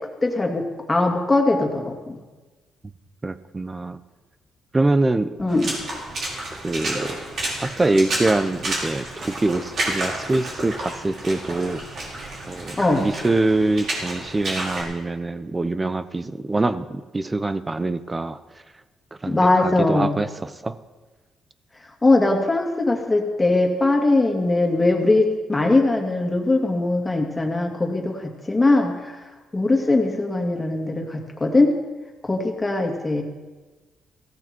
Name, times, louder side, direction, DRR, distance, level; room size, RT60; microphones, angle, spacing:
voice 1, 0.2-2.2 5.4-5.7 12.8-13.0 19.3-20.1 22.0-29.2 29.5-31.7 32.2-33.2, left 2 dB, 15° left, 1 dB, 2.7 m, -20 dB
voice 2, 3.2-4.0 4.7-5.4 6.5-7.2 7.6-11.8 12.5-18.4 19.2-20.8, right 2 dB, 20° right, 13 dB, 0.8 m, -24 dB
Water / Splash splatter, 5.5-14.8, right 1 dB, 55° right, 5.7 m, -30 dB
16.5 x 14.5 x 4.6 m, 1.3 s
cardioid pair, 90°, 0 cm